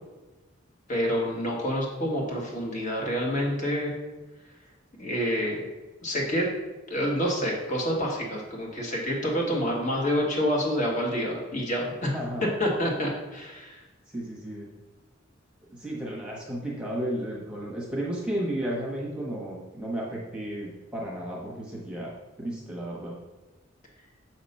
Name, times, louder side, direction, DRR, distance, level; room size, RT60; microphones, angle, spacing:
voice 1, 0.9-4.0 5.0-5.6 6.0-6.5 6.9-12.1 12.4-13.8, equal, 40° left, -2 dB, 1.5 m, -28 dB
voice 2, 12.0-12.4 14.1-14.7 15.7-22.1 22.4-23.1, right 1 dB, 5° right, -4 dB, 1.0 m, -33 dB
6.8 x 3.0 x 5.3 m, 1.2 s
head